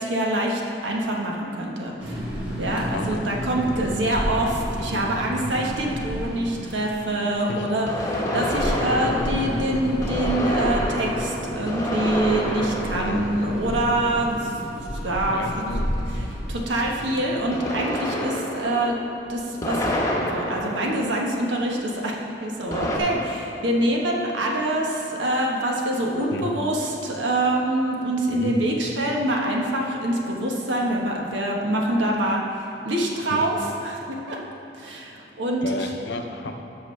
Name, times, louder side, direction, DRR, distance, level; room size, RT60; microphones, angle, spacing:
voice 1, 0.0-2.2 2.6-14.6 15.0-15.7 16.5-19.0 19.3-33.6 33.8-34.0 34.3-34.4 34.7-35.7, right 1 dB, 85° right, -1 dB, 1.2 m, -25 dB
sound 1, 2.0-17.4, equal, 5° right, 1.5 m, -32 dB
voice 2, 2.9-3.2 4.9-5.5 7.5-7.7 12.9-13.3 15.3-16.2 26.3-26.5 28.3-28.6 33.3-33.5 35.6-36.5, left 2 dB, 65° left, 5 dB, 0.6 m, -33 dB
sound 2, 3.9-4.0 7.9-14.4 17.5-21.7 22.7-23.0, left 1 dB, 20° left, 1.0 m, -29 dB
13.0 x 6.2 x 3.2 m, 2.9 s
head